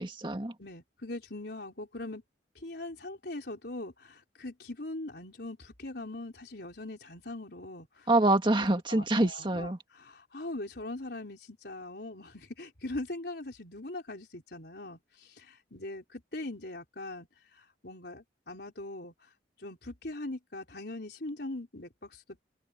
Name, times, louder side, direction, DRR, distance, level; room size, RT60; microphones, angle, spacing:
voice 1, 0.0-0.5 8.1-9.8, right 2 dB, 25° right, 1.9 m, -26 dB
voice 2, 0.6-2.2 2.6-8.1 8.6-17.3 17.6-19.3 19.6-22.4, left 2 dB, 60° left, 4.5 m, -41 dB
head